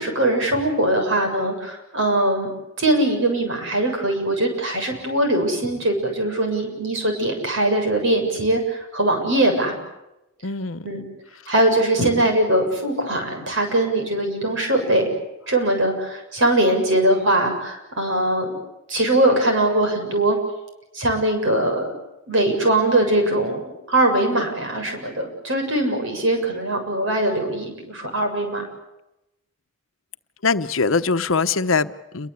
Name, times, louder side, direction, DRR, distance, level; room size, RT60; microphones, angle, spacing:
voice 1, 0.0-2.5 2.8-9.7 10.8-11.0 11.5-15.1 15.5-18.6 18.9-20.4 20.9-21.9 22.3-28.6, right 1 dB, 65° right, 4 dB, 7.3 m, -21 dB
voice 2, 10.4-11.0 30.4-32.3, left 4 dB, 70° left, 10 dB, 1.0 m, -22 dB
29.0 x 23.0 x 8.4 m, 0.92 s
head